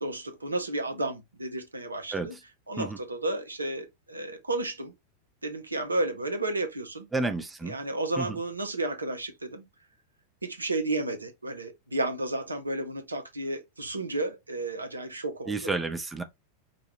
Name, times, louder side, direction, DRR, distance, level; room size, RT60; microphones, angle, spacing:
voice 1, 0.0-2.4 2.7-4.9 5.4-7.1 7.6-9.6 10.4-15.7, right 2 dB, 80° right, 0.7 m, -32 dB
voice 2, 7.1-7.7 8.2-8.3 15.5-16.2, right 3 dB, 10° right, 0.5 m, -30 dB
5.0 x 2.3 x 2.9 m
figure-of-eight pair, 90°, 0 cm